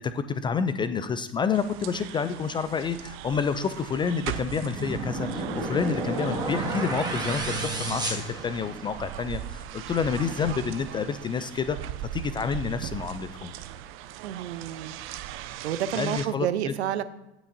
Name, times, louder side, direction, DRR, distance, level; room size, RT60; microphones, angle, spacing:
voice 1, 0.0-11.8 12.1-13.5 15.9-16.7, left 6 dB, 15° left, 11 dB, 0.3 m, -29 dB
sound 1, 1.5-16.3, right 12 dB, 35° right, 0.7 m, -39 dB
sound 2, 4.5-9.1, right 2 dB, 10° right, 2.0 m, -31 dB
voice 2, 14.2-14.9 15.6-17.0, right 11 dB, 65° right, 13 dB, 0.8 m, -29 dB
17.0 x 5.9 x 2.7 m, 0.99 s
hypercardioid pair, 90°, 35 cm